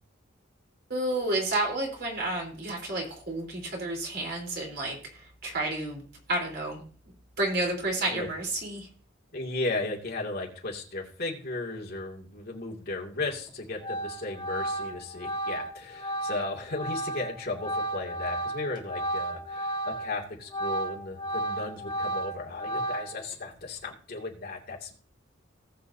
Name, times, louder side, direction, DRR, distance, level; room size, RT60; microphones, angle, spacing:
voice 1, 0.9-6.0 6.3-6.8 7.4-8.9, right 2 dB, 55° right, 0 dB, 3.7 m, -30 dB
voice 2, 9.3-24.9, left 2 dB, 50° left, -1 dB, 2.4 m, -35 dB
Organ, 13.3-13.5 13.8-20.1 20.4-23.3, right 1 dB, 25° left, 1.9 m, -33 dB
18.5 x 6.5 x 2.7 m, 0.42 s
head